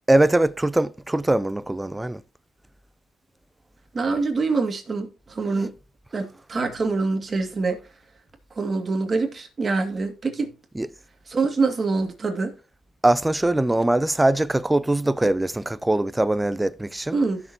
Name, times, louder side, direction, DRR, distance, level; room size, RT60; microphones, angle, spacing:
voice 1, 0.1-2.2 10.8-10.9 13.0-17.2, right 1 dB, 10° right, 0.6 m, -21 dB
voice 2, 3.9-5.7 6.1-7.8 8.5-10.5 11.3-12.5 17.1-17.4, right 3 dB, 35° right, 2.2 m, -25 dB
15.0 x 6.6 x 2.9 m
cardioid pair, 90°, 0 cm